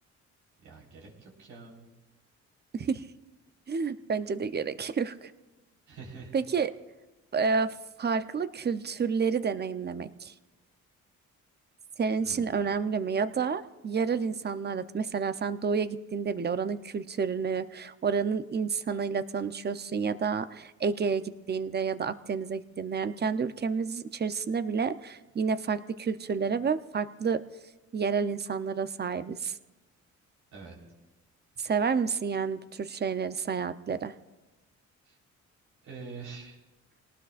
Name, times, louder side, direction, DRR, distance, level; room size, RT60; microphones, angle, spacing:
voice 1, 0.6-1.8 5.9-6.4 12.2-12.7 30.5-30.8 35.0-35.2 35.8-36.6, right 4 dB, 80° right, -2 dB, 4.3 m, -45 dB
voice 2, 2.7-3.0 3.7-5.3 6.3-6.7 7.3-10.3 12.0-27.4 27.9-29.6 31.6-34.1, right 5 dB, 35° right, 12 dB, 0.7 m, -30 dB
26.5 x 18.5 x 2.5 m, 1.1 s
cardioid pair, 90°, 30 cm